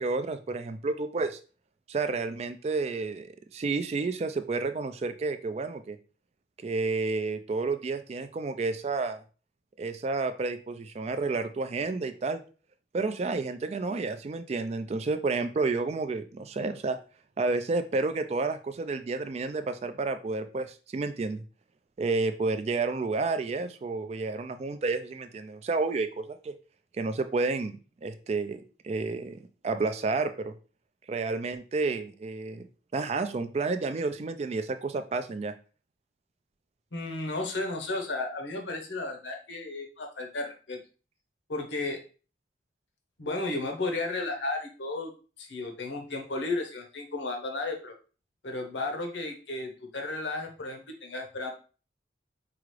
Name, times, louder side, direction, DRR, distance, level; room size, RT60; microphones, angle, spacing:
voice 1, 0.0-1.4 1.9-6.0 6.6-9.2 9.8-12.4 12.9-17.0 17.4-21.4 22.0-26.6 27.0-27.8 28.0-28.6 28.8-30.5 31.1-32.6 32.9-35.5, right 3 dB, 35° right, 9 dB, 0.3 m, -30 dB
voice 2, 36.9-40.8 41.5-42.0 43.2-45.1 45.4-47.9 48.4-51.5, left 2 dB, 85° left, 3 dB, 0.8 m, -33 dB
4.8 x 2.4 x 3.1 m, 0.36 s
head